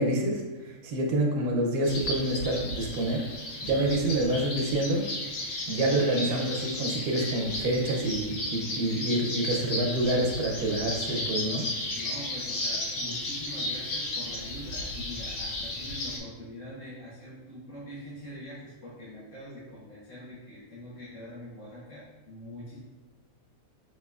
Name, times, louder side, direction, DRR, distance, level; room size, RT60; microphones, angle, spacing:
voice 1, 0.0-3.2 3.6-5.0 5.7-11.7, right 1 dB, 80° right, 1 dB, 1.3 m, -27 dB
sound 1, 1.8-16.2, left 1 dB, 80° left, 1.4 m, -34 dB
voice 2, 11.9-22.8, left 1 dB, 45° left, -10 dB, 1.6 m, -43 dB
5.7 x 3.0 x 2.3 m, 1.1 s
omnidirectional pair, 1.6 m